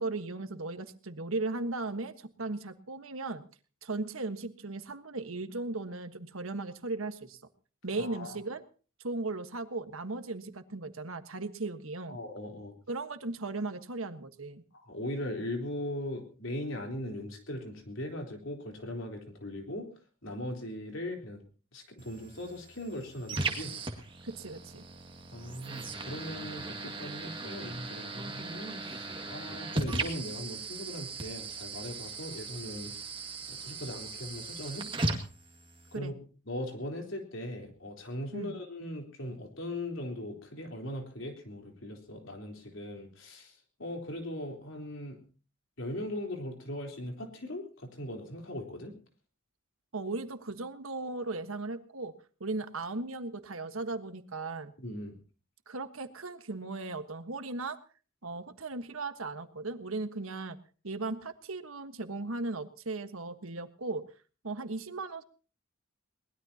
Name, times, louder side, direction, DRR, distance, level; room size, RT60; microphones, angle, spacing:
voice 1, 0.0-3.4 3.8-7.4 7.8-8.6 9.0-12.2 12.9-14.6 24.2-24.8 35.9-36.1 38.3-38.6 49.9-52.1 52.4-54.7 55.7-57.8 58.2-60.6 60.8-64.1 64.4-65.2, right 3 dB, 85° right, 9 dB, 1.4 m, -37 dB
voice 2, 7.9-8.4 12.1-12.7 14.8-19.9 20.2-21.4 21.7-23.8 25.3-32.9 33.5-35.2 35.9-36.1 36.5-45.2 45.8-48.9 54.8-55.2, left 1 dB, 70° left, 3 dB, 3.9 m, -39 dB
sound 1, 22.0-36.0, right 3 dB, 25° right, 2.0 m, -38 dB
22.5 x 19.5 x 2.9 m, 0.38 s
head